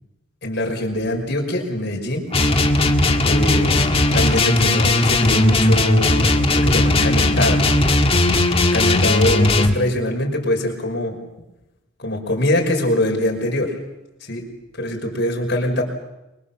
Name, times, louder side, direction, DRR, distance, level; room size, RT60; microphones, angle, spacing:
voice 1, 0.4-2.3 3.2-7.6 8.6-11.2 12.0-13.7 14.2-14.4 14.7-15.8, left 1 dB, 55° left, 2 dB, 5.7 m, -23 dB
sound 1, 2.3-9.8, left 2 dB, 30° left, 1.9 m, -17 dB
29.5 x 23.5 x 7.4 m, 0.94 s
head